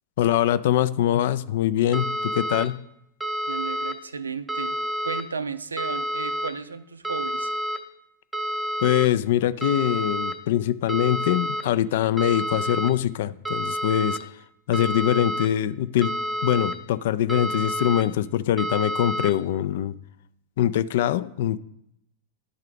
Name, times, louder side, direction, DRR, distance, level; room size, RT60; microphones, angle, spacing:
voice 1, 0.2-2.8 8.8-14.3 14.7-16.1 16.4-20.0 20.6-21.6, left 11 dB, 55° left, 16 dB, 0.3 m, -23 dB
sound 1, 1.9-2.7 3.2-3.9 4.5-5.2 5.8-6.5 7.0-7.8 8.3-9.1 9.6-10.3 10.9-11.6 12.2-12.9 13.4-14.2 14.7-15.5 16.0-16.7 17.3-18.0 18.6-19.3, equal, 5° right, 0.7 m, -29 dB
voice 2, 3.5-4.8 5.0-7.5, right 5 dB, 75° right, 14 dB, 0.4 m, -34 dB
11.0 x 3.7 x 4.9 m, 0.78 s
figure-of-eight pair, 90°, 0 cm